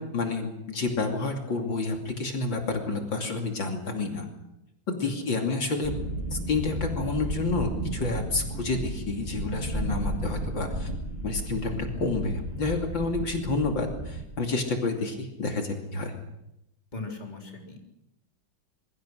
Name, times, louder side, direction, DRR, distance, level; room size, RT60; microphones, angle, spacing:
voice 1, 0.0-4.3 4.9-5.9 6.3-10.9 11.2-16.2, left 3 dB, 70° left, 3 dB, 3.4 m, -29 dB
voice 2, 5.0-5.5 16.9-17.8, left 3 dB, 20° left, 1 dB, 3.8 m, -39 dB
sound 1, 5.8-14.2, right 1 dB, 30° right, 4.4 m, -33 dB
26.0 x 22.5 x 6.3 m, 0.86 s
omnidirectional pair, 2.2 m